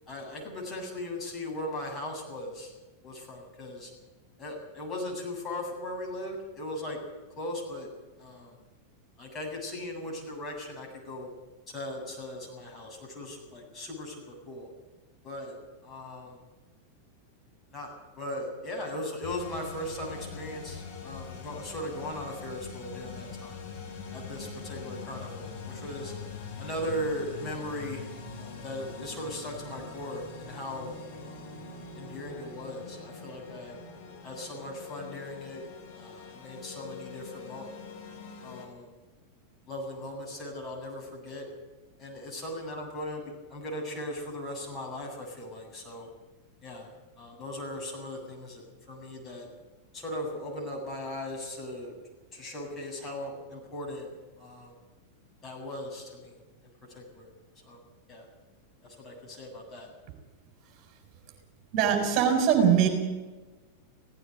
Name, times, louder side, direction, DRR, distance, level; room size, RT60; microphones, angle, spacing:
voice 1, 0.1-2.7 3.0-3.9 4.4-7.0 7.4-7.9 8.2-8.6 9.2-11.3 11.7-14.7 15.2-15.6 15.8-16.4 17.7-23.6 24.1-26.1 26.6-28.1 28.4-31.5 32.0-33.8 34.2-35.6 35.9-37.7 38.4-38.9 39.7-41.5 42.0-46.1 46.6-46.9 47.2-49.5 49.9-51.9 52.3-54.1 54.4-54.7 55.4-56.4 56.9-57.3 57.7-57.8 58.1-58.3 58.8-59.9, left 1 dB, 25° left, -1 dB, 7.9 m, -38 dB
sound 1, 19.2-38.6, left 4 dB, 45° left, 6.0 m, -43 dB
voice 2, 61.7-62.9, right 8 dB, 40° right, 4 dB, 4.4 m, -22 dB
17.5 x 16.0 x 9.4 m, 1.2 s
figure-of-eight pair, 90°, 0 cm